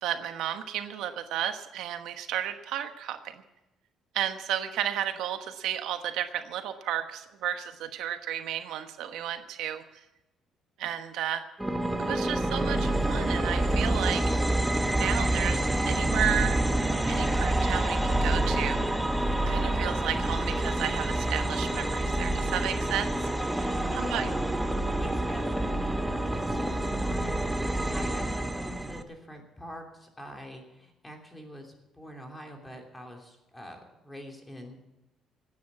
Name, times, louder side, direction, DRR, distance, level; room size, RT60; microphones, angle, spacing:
voice 1, 0.0-3.4 4.1-10.0 10.8-11.4 12.0-14.3 14.9-16.6 17.1-18.8 19.5-23.2 23.4-24.3, right 10 dB, 80° right, 8 dB, 1.2 m, -33 dB
sound 1, 11.6-29.0, right 1 dB, 5° right, 0.9 m, -27 dB
voice 2, 23.9-24.6 24.9-27.4 27.7-34.8, equal, 10° left, 2 dB, 3.0 m, -44 dB
17.0 x 9.5 x 8.3 m, 0.95 s
cardioid pair, 140°, 0 cm